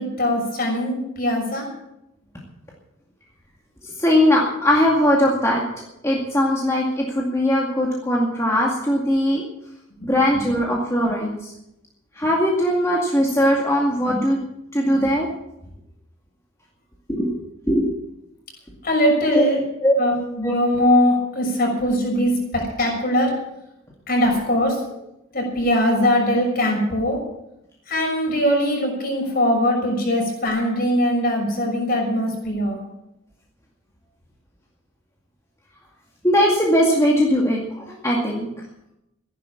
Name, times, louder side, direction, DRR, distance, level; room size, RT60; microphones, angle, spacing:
voice 1, 0.0-1.6 10.0-10.1 14.1-14.2 14.9-15.0 18.8-19.6 20.0-23.3 24.1-24.8 25.3-27.2 27.9-32.8, equal, 45° left, 1 dB, 6.4 m, -21 dB
voice 2, 3.8-9.4 10.0-11.5 12.1-14.4 14.7-15.3 17.1-17.3 17.7-17.9 19.3-19.4 19.8-20.0 20.4-20.5 36.2-37.6 38.0-38.5, equal, 15° left, -3 dB, 2.2 m, -20 dB
15.5 x 11.0 x 7.2 m, 0.84 s
head